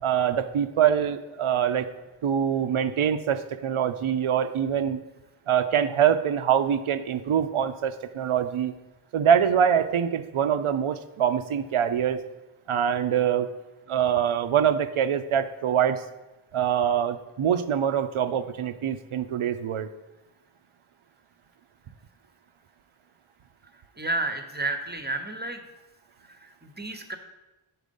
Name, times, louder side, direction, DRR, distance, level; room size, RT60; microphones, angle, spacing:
voice 1, 0.0-1.9 2.2-5.0 5.5-8.8 9.1-12.2 12.7-13.5 13.9-16.0 16.5-19.9, right 8 dB, 75° right, 10 dB, 0.5 m, -24 dB
voice 2, 24.0-25.6 26.4-27.2, right 2 dB, 20° right, 6 dB, 0.8 m, -31 dB
6.4 x 4.6 x 5.2 m, 1.0 s
wide cardioid pair, 45°, 50 cm